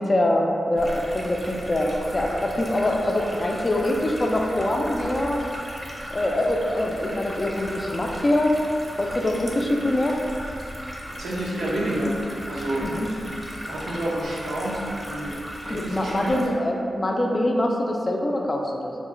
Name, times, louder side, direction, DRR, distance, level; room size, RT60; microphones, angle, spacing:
voice 1, 0.0-5.5 6.1-8.6 9.0-10.2 12.8-13.1 15.7-19.0, left 1 dB, 30° left, 1 dB, 0.4 m, -24 dB
sound 1, 0.8-16.5, equal, 15° right, 0.6 m, -37 dB
voice 2, 11.2-12.2 12.4-12.8 13.6-16.3, right 1 dB, 85° right, -5 dB, 0.7 m, -29 dB
3.7 x 2.0 x 3.7 m, 2.6 s
wide cardioid pair, 85°, 0 cm